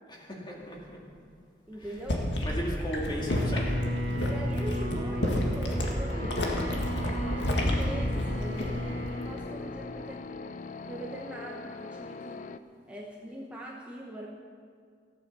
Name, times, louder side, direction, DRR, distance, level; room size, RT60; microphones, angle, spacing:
voice 1, 0.1-1.0 1.8-1.9 2.4-3.7, equal, 25° left, -2 dB, 2.3 m, -36 dB
voice 2, 1.7-2.2 4.2-10.2 10.9-12.4 12.9-14.3, right 1 dB, 5° right, -4 dB, 1.1 m, -42 dB
sound 1, 1.8-9.0 9.3-9.6, left 1 dB, 80° left, 1.9 m, -30 dB
Bowed string instrument, 3.2-9.4, equal, 60° right, 2.8 m, -35 dB
sound 2, 6.1-12.6, left 3 dB, 45° left, 0.5 m, -41 dB
14.5 x 8.9 x 7.0 m, 2.1 s
head